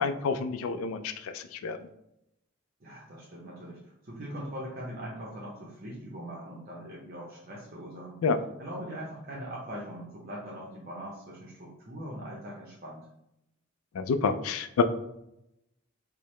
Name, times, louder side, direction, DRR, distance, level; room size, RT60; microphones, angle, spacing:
voice 1, 0.0-1.8 8.2-8.4 14.0-14.8, left 5 dB, 75° left, 10 dB, 0.3 m, -28 dB
voice 2, 2.8-8.2 8.6-13.1, equal, 45° right, -4 dB, 0.6 m, -41 dB
4.5 x 2.0 x 3.1 m, 0.83 s
head